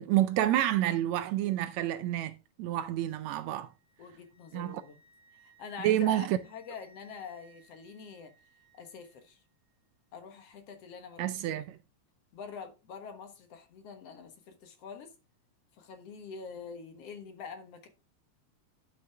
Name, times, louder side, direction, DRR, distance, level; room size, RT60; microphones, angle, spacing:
voice 1, 0.0-2.3 2.6-3.7 4.5-4.8 5.8-6.4 11.2-11.8, right 13 dB, 80° right, 1.7 m, -28 dB
Wind instrument woodwind instrument, 3.4-9.3, right 3 dB, 45° right, 3.7 m, -63 dB
voice 2, 4.0-5.0 5.4-8.3 8.7-9.4 10.1-11.3 12.3-15.1 15.8-17.9, left 6 dB, 60° left, 2.2 m, -45 dB
11.0 x 6.0 x 3.4 m
omnidirectional pair, 3.4 m